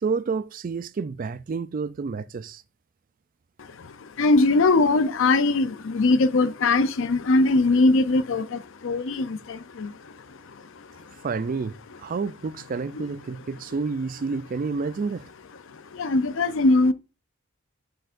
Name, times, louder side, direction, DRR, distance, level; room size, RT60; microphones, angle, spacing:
voice 1, 0.0-2.6 11.2-11.7 12.0-15.2, right 4 dB, 40° right, 0.4 m, -29 dB
voice 2, 4.2-8.4 8.8-9.4 9.8-9.9 16.0-16.9, left 2 dB, 65° left, 0.6 m, -20 dB
7.9 x 6.6 x 2.5 m
head